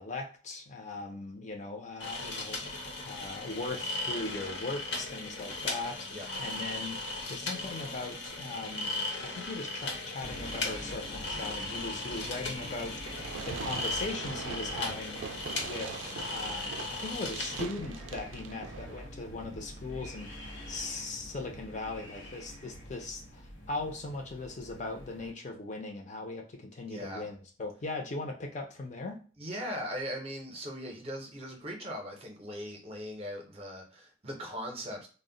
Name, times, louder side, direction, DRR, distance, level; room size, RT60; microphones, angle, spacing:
voice 1, 0.0-15.2 15.6-23.4 23.7-29.2, left 3 dB, 40° left, 0.5 m, -39 dB
sound 1, 2.0-17.6, left 2 dB, 70° left, 0.7 m, -37 dB
sound 2, 10.2-25.3, equal, 85° left, 1.0 m, -46 dB
Fireworks, 13.1-19.1, right 6 dB, 85° right, 0.3 m, -42 dB
voice 2, 26.8-27.3 29.4-35.1, equal, 30° right, 0.6 m, -39 dB
2.1 x 2.0 x 3.7 m
head